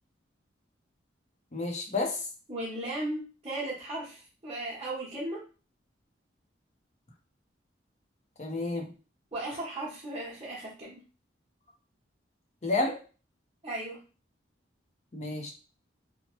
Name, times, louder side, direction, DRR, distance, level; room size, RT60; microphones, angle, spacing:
voice 1, 1.5-2.2 8.4-8.9 12.6-13.0 15.1-15.5, left 2 dB, 40° left, 2 dB, 0.6 m, -30 dB
voice 2, 2.5-5.4 9.3-11.0 13.6-14.0, right 1 dB, 30° right, -7 dB, 0.9 m, -36 dB
3.0 x 2.0 x 2.9 m, 0.35 s
head